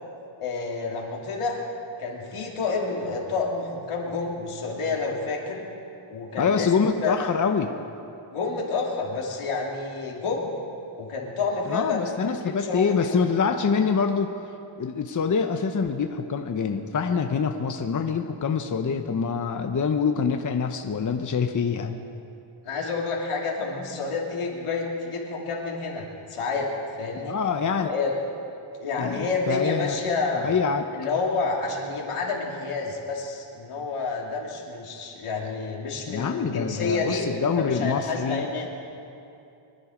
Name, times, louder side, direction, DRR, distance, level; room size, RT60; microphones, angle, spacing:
voice 1, 0.4-1.6 2.0-5.6 6.1-6.7 7.0-7.3 8.3-10.5 11.0-12.2 12.4-13.2 22.6-26.7 27.0-27.4 27.8-28.1 28.8-30.5 30.9-37.2 37.6-38.7, left 4 dB, 85° left, -2 dB, 2.8 m, -29 dB
voice 2, 6.4-7.7 11.7-14.3 14.8-22.0 27.2-27.9 29.0-30.2 30.4-30.8 36.1-38.5, left 5 dB, 40° left, 5 dB, 0.9 m, -25 dB
24.5 x 10.5 x 5.1 m, 2.6 s
cardioid pair, 90°, 49 cm